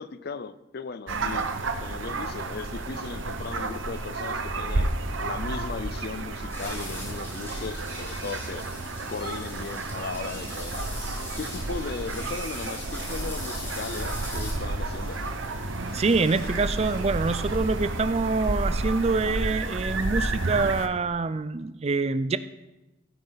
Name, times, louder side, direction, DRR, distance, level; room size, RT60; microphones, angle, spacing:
voice 1, 0.0-1.5 1.8-4.9 5.2-8.6 9.1-10.9 11.4-15.2, left 4 dB, 50° left, 15 dB, 0.4 m, -37 dB
sound 1, 1.1-20.9, right 2 dB, 65° right, 0.9 m, -31 dB
Shatter, 4.7-20.3, left 1 dB, 25° left, 3.7 m, -52 dB
sound 2, 6.5-14.5, left 1 dB, 10° left, 2.7 m, -41 dB
voice 2, 15.9-22.4, right 3 dB, 30° right, 14 dB, 0.4 m, -25 dB
15.5 x 9.3 x 4.0 m, 1.0 s
head